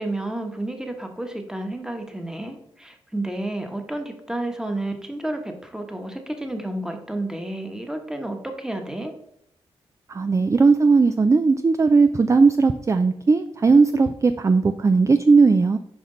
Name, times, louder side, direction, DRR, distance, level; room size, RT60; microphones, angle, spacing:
voice 1, 0.0-9.1, right 1 dB, 5° right, 5 dB, 1.2 m, -31 dB
voice 2, 10.1-15.8, right 4 dB, 30° right, 10 dB, 0.4 m, -17 dB
6.0 x 5.0 x 3.8 m, 0.74 s
cardioid pair, 55°, 11 cm